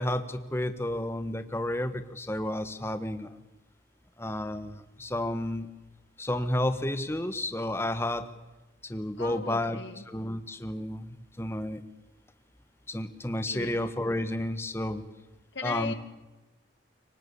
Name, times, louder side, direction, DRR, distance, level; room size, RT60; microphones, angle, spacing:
voice 1, 0.0-3.3 4.2-5.7 6.2-8.3 8.8-9.8 10.1-11.8 12.9-15.0 15.6-15.9, left 1 dB, 15° left, 10 dB, 1.4 m, -31 dB
voice 2, 9.2-10.0 13.5-13.8 15.5-15.9, left 4 dB, 65° left, 10 dB, 2.1 m, -37 dB
27.0 x 24.0 x 7.1 m, 1.1 s
head